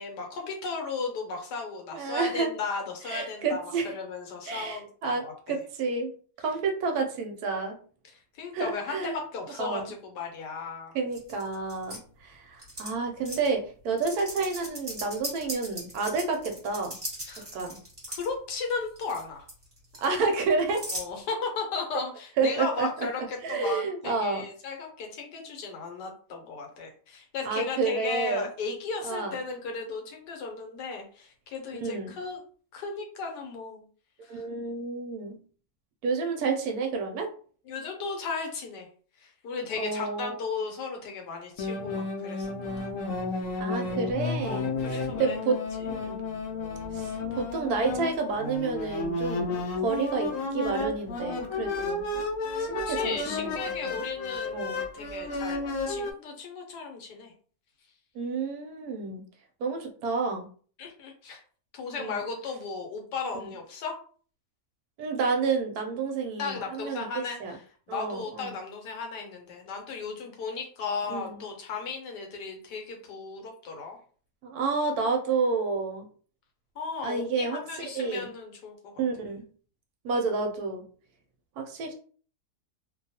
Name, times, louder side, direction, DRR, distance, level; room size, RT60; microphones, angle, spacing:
voice 1, 0.0-3.6 3.8-5.6 8.1-10.9 17.2-17.5 18.1-19.5 20.9-32.4 32.7-33.9 34.2-34.5 37.7-38.9 39.2-42.9 43.5-43.6 44.4-45.4 46.0-46.4 52.9-55.6 55.9-57.3 60.8-61.4 61.7-64.0 66.4-67.6 67.9-74.0 76.7-78.8, left 4 dB, 85° left, 2 dB, 1.4 m, -35 dB
voice 2, 1.9-2.5 3.0-3.9 4.5-6.1 6.4-7.8 8.5-9.2 9.6-9.9 10.9-17.0 17.4-17.8 20.0-20.9 22.4-23.1 23.4-24.4 27.5-28.5 29.0-29.3 31.7-32.1 34.3-35.4 36.0-37.3 39.8-40.4 43.6-46.2 46.9-52.0 52.6-54.1 54.5-54.8 58.1-59.2 59.6-60.5 62.0-62.2 63.3-63.5 65.0-67.6 67.9-68.5 71.1-71.4 74.4-76.1 77.0-78.3 79.0-79.5 80.0-80.8 81.6-81.9, right 4 dB, 75° right, 3 dB, 1.0 m, -30 dB
sound 1, 11.1-12.0 12.6-12.9 13.2-13.5 14.0-18.3 18.7-19.2 19.5-21.1, equal, 20° right, 1.0 m, -38 dB
sound 2, 41.6-56.1, left 3 dB, 70° left, 0.8 m, -32 dB
2.9 x 2.2 x 2.7 m, 0.43 s
omnidirectional pair, 1.8 m